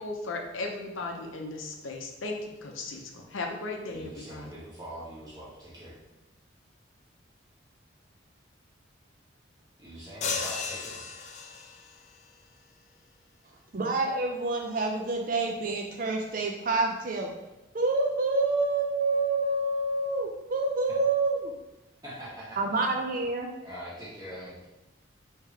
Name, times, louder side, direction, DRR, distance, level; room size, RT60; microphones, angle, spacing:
voice 1, 0.0-4.5, left 2 dB, 85° left, 3 dB, 0.6 m, -36 dB
voice 2, 3.9-6.0 9.8-11.0 20.9-21.0 22.0-23.2 23.6-24.7, equal, 20° right, -9 dB, 1.6 m, -43 dB
sound 1, 10.2-12.0, left 5 dB, 35° left, 0.4 m, -34 dB
voice 3, 13.7-17.3 17.7-21.5 22.6-23.5, right 3 dB, 45° right, 1 dB, 0.4 m, -27 dB
3.6 x 2.9 x 4.5 m, 0.99 s
head